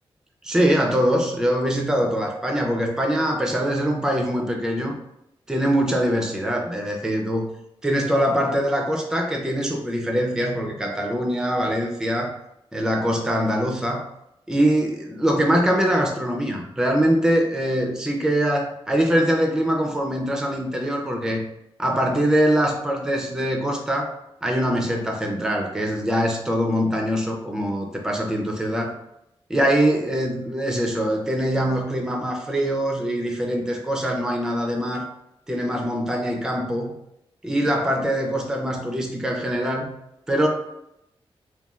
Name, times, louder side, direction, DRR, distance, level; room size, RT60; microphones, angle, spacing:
voice 1, 0.4-4.9 5.5-7.5 7.8-12.3 12.7-14.0 14.5-21.5 21.8-24.1 24.4-28.9 29.5-35.1 35.5-36.9 37.4-39.9 40.3-40.5, equal, 5° right, 1 dB, 0.3 m, -23 dB
2.9 x 2.2 x 2.3 m, 0.82 s
wide cardioid pair, 145°, 10 cm